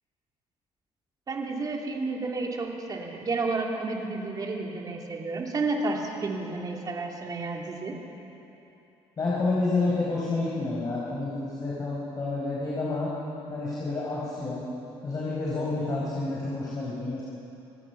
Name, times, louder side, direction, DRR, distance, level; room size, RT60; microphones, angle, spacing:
voice 1, 1.3-8.0, right 3 dB, 35° right, 0 dB, 2.9 m, -31 dB
voice 2, 9.2-13.1 13.5-14.6 15.0-17.2, left 3 dB, 35° left, -6 dB, 4.8 m, -29 dB
26.0 x 19.0 x 5.9 m, 3.0 s
cardioid pair, 120°, 11 cm